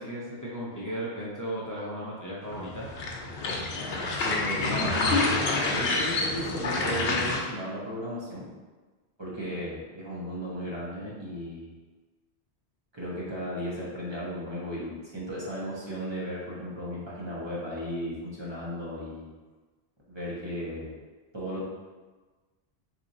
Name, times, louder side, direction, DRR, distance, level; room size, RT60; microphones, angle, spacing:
voice 1, 0.0-2.9, right 1 dB, 25° left, -6 dB, 0.4 m, -35 dB
sound 1, 2.5-7.4, left 3 dB, 70° left, 0.8 m, -28 dB
voice 2, 4.2-8.5 9.2-11.7 12.9-19.3 20.1-20.9 21.3-21.6, equal, 25° right, -7 dB, 0.8 m, -35 dB
4.1 x 2.9 x 2.6 m, 1.3 s
omnidirectional pair, 1.1 m